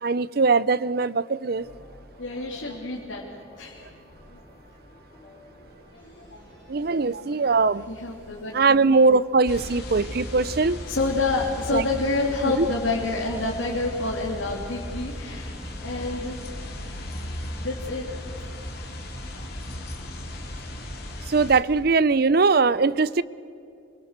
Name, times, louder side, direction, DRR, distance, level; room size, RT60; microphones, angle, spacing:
voice 1, 0.0-1.7 6.7-7.8 8.5-10.8 11.7-11.8 12.4-12.7 21.3-23.2, right 4 dB, 50° right, 18 dB, 0.6 m, -21 dB
sound 1, 1.5-11.5, equal, 25° left, 6.9 m, -52 dB
voice 2, 1.8-3.2 3.6-3.9 4.3-4.4 4.8-5.0 5.2-5.3 5.9-6.7 7.4-7.6 7.9-8.5 10.4-15.6 15.8-16.4 17.6-18.1 19.4-19.5, left 3 dB, 80° left, -3 dB, 3.1 m, -29 dB
sound 2, 9.5-21.6, left 1 dB, 55° left, 3.3 m, -36 dB
27.0 x 22.5 x 6.7 m, 2.5 s
head